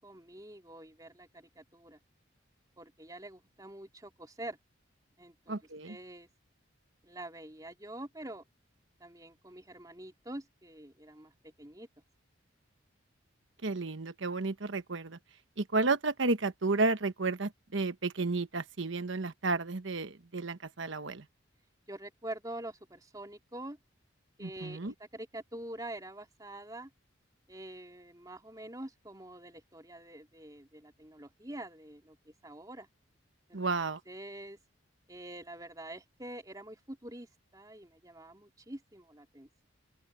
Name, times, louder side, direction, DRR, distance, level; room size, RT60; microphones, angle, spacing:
voice 1, 0.0-2.0 2.8-4.6 5.2-5.6 5.8-6.3 7.0-8.5 9.0-11.9 21.9-23.8 24.4-26.9 27.5-32.9 33.5-33.6 34.1-34.6 35.1-39.7, right 1 dB, 20° right, 3.1 m, -46 dB
voice 2, 5.5-6.0 13.6-15.2 15.6-21.2 24.4-24.9 33.5-34.0, right 3 dB, 70° right, 1.1 m, -32 dB
open air
head